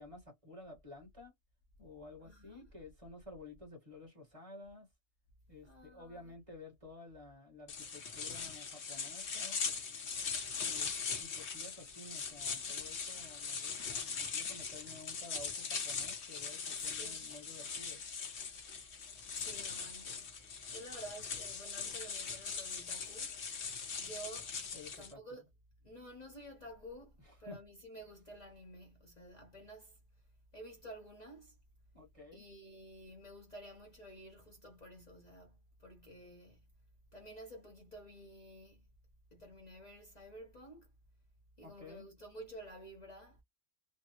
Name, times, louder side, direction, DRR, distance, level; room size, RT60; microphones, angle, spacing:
voice 1, 0.0-1.3 1.8-4.9 5.5-9.6 10.6-18.0 24.7-25.4 27.2-27.6 31.9-32.5 41.6-42.1, left 2 dB, 30° right, 1.4 m, -53 dB
voice 2, 2.2-2.7 5.6-6.3 16.8-17.2 19.1-20.3 20.7-23.3 24.0-24.5 25.0-25.5 25.8-30.0 30.5-31.5 32.3-36.6 37.1-38.8 39.3-40.9 41.6-43.4, right 1 dB, 40° left, 0.9 m, -52 dB
sound 1, 7.7-25.1, left 5 dB, 65° left, 1.2 m, -41 dB
3.3 x 2.1 x 2.8 m
omnidirectional pair, 1.2 m